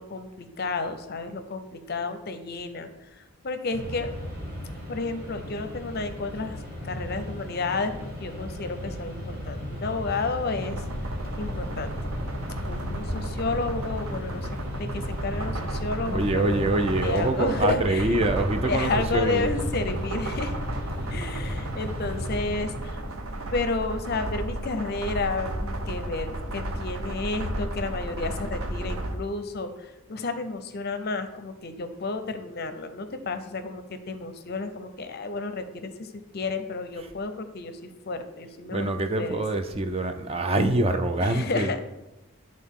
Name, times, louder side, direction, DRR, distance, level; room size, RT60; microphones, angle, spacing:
voice 1, 0.0-4.1 4.9-6.6 6.8-12.0 12.7-14.5 14.7-16.7 17.0-18.2 18.6-20.6 21.1-23.0 23.5-38.9 39.2-39.4 41.2-41.8, left 3 dB, 45° left, 9 dB, 0.5 m, -31 dB
Mechanisms, 3.7-23.2, equal, 45° right, 1.8 m, -35 dB
sound 1, 10.6-29.2, right 1 dB, 70° right, 0.7 m, -34 dB
voice 2, 16.1-19.5 37.0-37.1 38.7-41.8, right 2 dB, 25° right, 7 dB, 0.4 m, -25 dB
10.5 x 3.8 x 3.6 m, 1.0 s
head